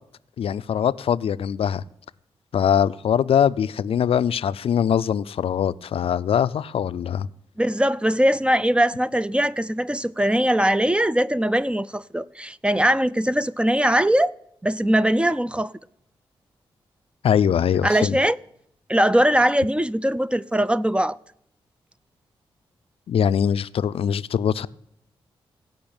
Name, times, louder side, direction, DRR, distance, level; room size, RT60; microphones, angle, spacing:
voice 1, 0.4-1.8 2.5-7.3 17.2-18.2 23.1-24.7, left 8 dB, 70° left, 0.4 m, -22 dB
voice 2, 7.6-14.3 14.6-15.7 17.8-18.4 18.9-21.2, right 1 dB, 10° right, 0.4 m, -21 dB
16.5 x 5.6 x 8.8 m
cardioid pair, 70°, 10 cm